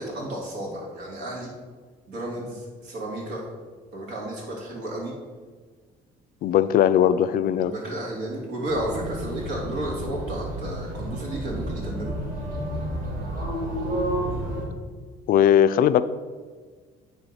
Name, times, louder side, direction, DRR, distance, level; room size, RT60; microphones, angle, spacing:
voice 1, 0.0-1.5 2.1-3.5 3.9-5.1 7.6-12.1, right 1 dB, 75° right, -3 dB, 2.5 m, -32 dB
voice 2, 6.4-7.7 15.3-16.0, left 10 dB, 60° left, 13 dB, 0.4 m, -19 dB
sound 1, 8.7-14.7, right 1 dB, 55° right, 2.1 m, -31 dB
9.7 x 3.6 x 5.7 m, 1.5 s
cardioid pair, 110°, 17 cm